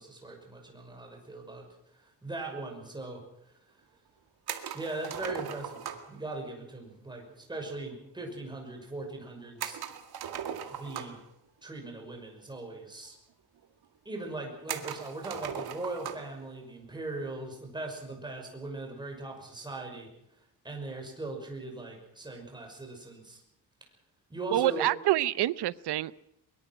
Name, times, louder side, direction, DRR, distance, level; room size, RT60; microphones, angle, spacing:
voice 1, 0.0-1.7 1.9-3.6 4.7-9.8 10.7-11.2 11.6-13.1 14.0-20.1 20.6-23.4 24.3-24.9, right 2 dB, 10° right, 2 dB, 6.0 m, -40 dB
sound 1, 4.5-6.2 9.6-11.3 12.4-12.5 12.7-12.8 13.6-13.7 14.7-16.3, right 8 dB, 70° right, 2.2 m, -38 dB
voice 2, 24.5-26.1, right 14 dB, 90° right, 17 dB, 0.8 m, -27 dB
22.5 x 22.5 x 6.1 m, 0.79 s
cardioid pair, 160°, 39 cm